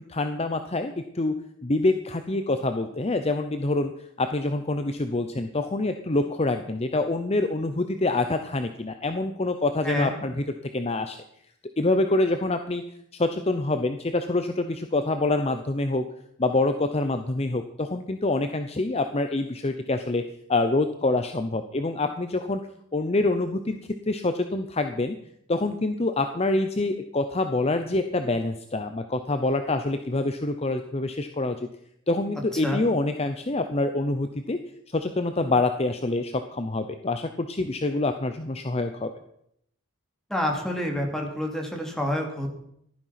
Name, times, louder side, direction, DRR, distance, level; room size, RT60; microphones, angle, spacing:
voice 1, 0.1-1.3 1.6-3.9 4.2-10.3 10.7-11.2 11.8-12.8 13.1-16.0 16.4-20.2 20.5-22.6 22.9-23.8 24.1-25.2 25.5-31.6 32.1-34.6 34.9-39.1, left 2 dB, 30° left, 7 dB, 0.7 m, -26 dB
voice 2, 9.8-10.1 32.5-32.8 40.3-42.5, left 1 dB, ahead, 1 dB, 2.6 m, -28 dB
15.0 x 12.0 x 5.8 m, 0.73 s
head